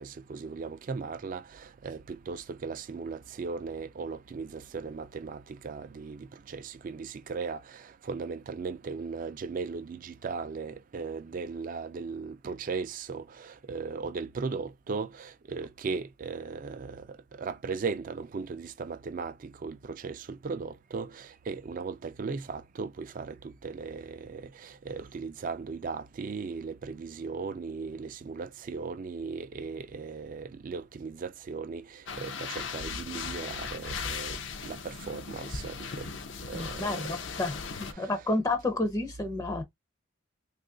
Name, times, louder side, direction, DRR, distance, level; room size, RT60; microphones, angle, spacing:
voice 1, 0.0-36.1 36.4-37.2 37.9-38.1, right 4 dB, 45° right, 0.3 m, -37 dB
sound 1, 32.1-37.9, left 5 dB, 65° left, 0.5 m, -37 dB
voice 2, 36.5-37.6 38.0-39.6, left 2 dB, 20° left, 0.5 m, -30 dB
3.0 x 2.4 x 3.6 m
head